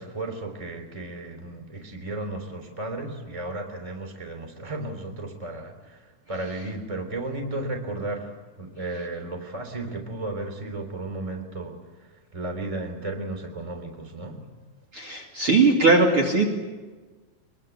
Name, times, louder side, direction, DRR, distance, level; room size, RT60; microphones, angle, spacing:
voice 1, 0.0-14.4, right 2 dB, 10° right, 4 dB, 2.8 m, -34 dB
voice 2, 14.9-16.5, right 3 dB, 40° right, 0 dB, 2.8 m, -19 dB
24.0 x 22.0 x 8.3 m, 1.3 s
omnidirectional pair, 4.2 m